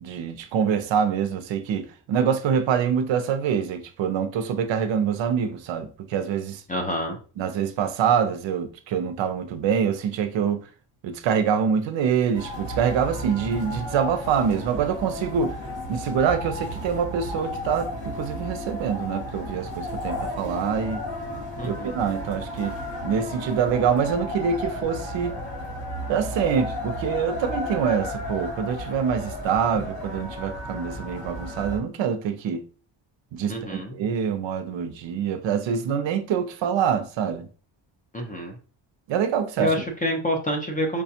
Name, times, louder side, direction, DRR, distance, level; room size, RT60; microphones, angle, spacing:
voice 1, 0.0-6.6 7.4-10.7 11.0-15.6 15.9-21.1 21.6-22.7 23.0-25.4 26.1-32.7 33.3-37.5 39.1-39.8, right 7 dB, 65° right, 0.6 m, -25 dB
voice 2, 6.7-7.2 21.6-22.0 33.5-33.9 38.1-38.6 39.6-41.0, left 1 dB, 20° left, 0.5 m, -27 dB
sound 1, 12.3-31.8, left 1 dB, 50° left, 1.8 m, -33 dB
4.8 x 2.3 x 2.7 m
cardioid pair, 140°, 49 cm